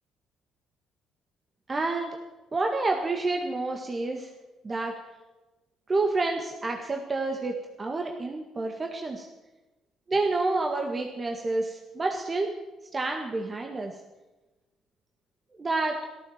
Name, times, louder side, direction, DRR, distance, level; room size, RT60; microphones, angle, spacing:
voice 1, 1.7-2.1 2.5-4.3 4.6-4.9 5.9-9.3 10.1-12.5 12.9-13.9 15.6-16.0, right 3 dB, 35° right, 3 dB, 1.9 m, -29 dB
13.5 x 13.0 x 7.4 m, 1.1 s
supercardioid pair, 60°, 0 cm